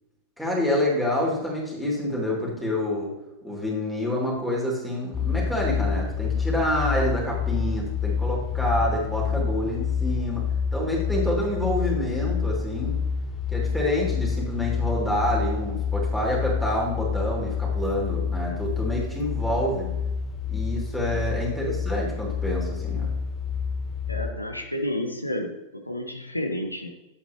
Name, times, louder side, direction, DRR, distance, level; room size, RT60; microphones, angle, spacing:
voice 1, 0.4-3.1 3.4-10.5 10.7-13.0 13.5-19.9 20.5-23.1, left 1 dB, ahead, -4 dB, 3.0 m, -27 dB
sound 1, 5.1-24.3, left 6 dB, 15° left, 1.1 m, -28 dB
voice 2, 24.1-26.9, left 1 dB, 85° left, 4 dB, 0.8 m, -31 dB
9.9 x 7.9 x 3.0 m, 0.99 s
figure-of-eight pair, 90°, 0 cm